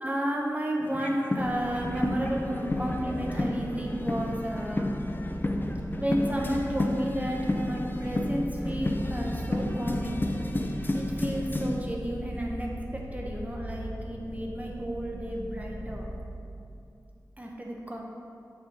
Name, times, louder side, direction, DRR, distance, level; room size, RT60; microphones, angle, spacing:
voice 1, 0.0-4.9 6.0-10.3 10.9-16.1 17.4-18.0, equal, 20° right, -1 dB, 0.7 m, -32 dB
sound 1, 0.8-11.8, left 1 dB, 30° left, 0.4 m, -31 dB
sound 2, 1.4-16.2, equal, 5° left, 1.2 m, -39 dB
8.7 x 3.7 x 4.1 m, 2.6 s
wide cardioid pair, 75°, 7 cm